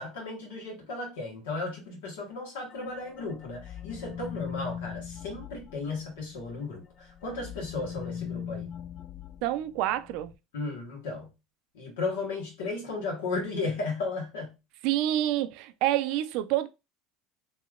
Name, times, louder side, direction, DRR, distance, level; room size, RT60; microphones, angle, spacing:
voice 1, 0.0-8.7 10.5-11.3 11.7-14.5, left 3 dB, 85° left, 1.3 m, -35 dB
sound 1, 2.7-6.6 7.0-10.3, left 8 dB, 40° left, 0.3 m, -41 dB
voice 2, 9.4-10.3 14.8-16.7, right 13 dB, 70° right, 0.4 m, -27 dB
3.1 x 2.7 x 2.3 m
supercardioid pair, 95°, 0 cm